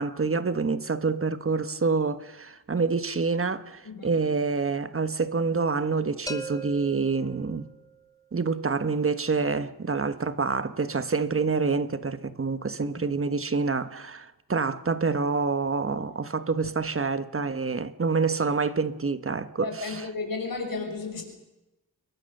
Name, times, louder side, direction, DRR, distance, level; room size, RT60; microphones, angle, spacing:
voice 1, 0.0-7.6 8.3-19.9, right 4 dB, 35° right, 1.3 m, -27 dB
sound 1, 6.3-8.1, right 2 dB, 10° left, 1.2 m, -39 dB
voice 2, 19.6-21.2, left 3 dB, 55° left, 5.8 m, -33 dB
28.0 x 22.5 x 6.7 m
wide cardioid pair, 125°, 40 cm